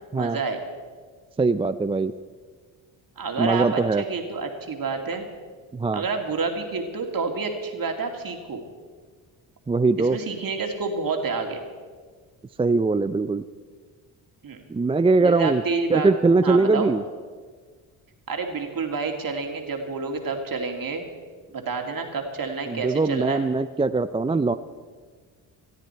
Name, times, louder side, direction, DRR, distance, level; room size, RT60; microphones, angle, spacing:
voice 1, 0.1-0.6 3.2-5.2 5.9-8.6 10.0-11.6 14.4-14.6 15.2-16.1 16.4-16.9 18.3-21.0 21.5-23.4, right 4 dB, 50° right, 3 dB, 2.6 m, -29 dB
voice 2, 1.4-2.1 3.4-4.0 5.7-6.0 9.7-10.2 12.6-13.4 14.7-15.6 15.9-17.0 22.7-24.5, right 3 dB, 15° right, 11 dB, 0.4 m, -21 dB
19.5 x 13.0 x 4.5 m, 1.5 s
supercardioid pair, 60°, 45 cm